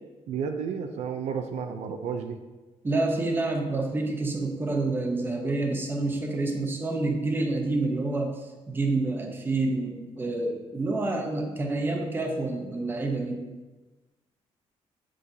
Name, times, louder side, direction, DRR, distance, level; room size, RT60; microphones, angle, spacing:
voice 1, 0.3-2.4, right 6 dB, 75° right, 6 dB, 0.5 m, -32 dB
voice 2, 2.8-8.3 8.7-13.4, right 2 dB, 20° right, 2 dB, 0.8 m, -28 dB
7.4 x 6.2 x 2.7 m, 1.2 s
cardioid pair, 150°, 11 cm